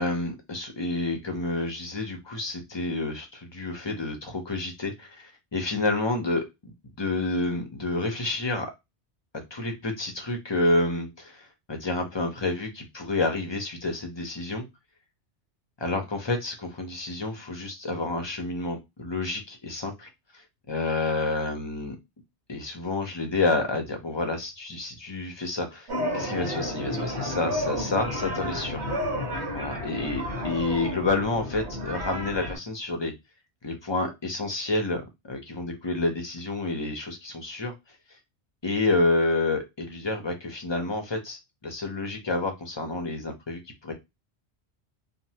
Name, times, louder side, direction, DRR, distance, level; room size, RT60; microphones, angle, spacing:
voice 1, 0.0-6.4 7.0-8.7 9.3-14.6 15.8-20.1 20.3-22.0 22.5-25.9 26.1-28.8 29.5-33.1 33.6-37.7 38.6-43.9, left 2 dB, 35° left, 4 dB, 0.5 m, -29 dB
sound 1, 25.9-32.6, equal, 70° right, 1.5 m, -31 dB
3.1 x 2.1 x 2.7 m, 0.21 s
omnidirectional pair, 1.1 m